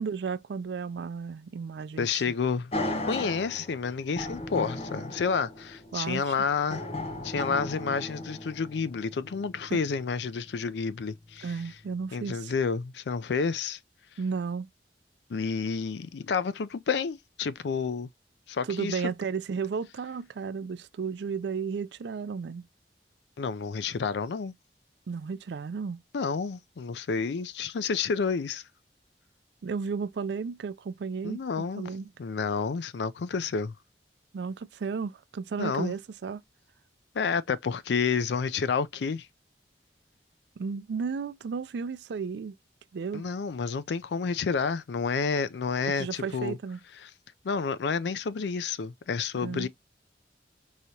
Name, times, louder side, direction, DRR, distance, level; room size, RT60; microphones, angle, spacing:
voice 1, 0.0-2.4 5.9-6.3 11.4-12.5 14.2-14.7 18.6-22.7 25.1-26.0 29.6-31.4 31.8-32.1 34.3-36.4 40.6-42.5 42.9-43.2 46.0-46.8 49.4-49.7, right 5 dB, 75° right, 0.4 m, -33 dB
voice 2, 2.0-2.7 3.1-6.8 7.2-11.5 12.1-13.8 15.3-18.1 18.5-19.0 23.4-24.5 26.1-28.6 31.2-31.9 32.2-33.7 35.6-35.9 37.1-39.3 43.1-46.6 47.4-49.7, left 5 dB, 75° left, 0.4 m, -30 dB
sound 1, 2.7-10.8 11.3-11.4, left 1 dB, 35° left, 0.7 m, -36 dB
4.8 x 2.9 x 2.7 m
head